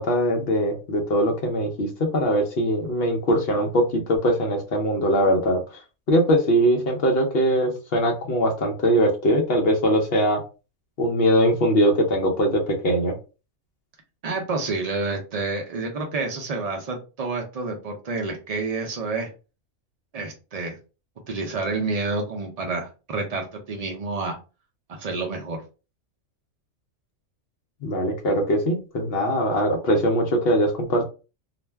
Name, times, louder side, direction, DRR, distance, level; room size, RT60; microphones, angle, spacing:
voice 1, 0.0-5.8 6.1-10.4 11.0-13.1 27.8-31.0, equal, 55° left, 1 dB, 0.7 m, -21 dB
voice 2, 14.2-19.3 20.1-20.8 21.3-24.4 24.9-25.6, right 3 dB, 75° right, 2 dB, 0.3 m, -29 dB
2.4 x 2.2 x 3.2 m, 0.32 s
omnidirectional pair, 1.4 m